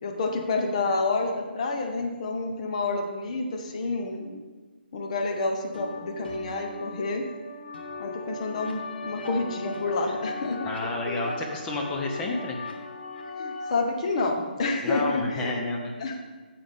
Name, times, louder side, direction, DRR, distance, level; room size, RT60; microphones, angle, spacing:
voice 1, 0.0-4.4 4.9-7.3 8.0-10.7 11.1-11.3 13.4-15.6 16.0-16.1, left 3 dB, 40° left, 3 dB, 1.2 m, -29 dB
sound 1, 5.7-13.7, left 3 dB, 70° left, 1.6 m, -38 dB
voice 2, 10.6-12.6 14.8-15.9, left 2 dB, 15° left, 0 dB, 0.7 m, -30 dB
9.1 x 7.1 x 3.6 m, 1.3 s
hypercardioid pair, 160°, 6 cm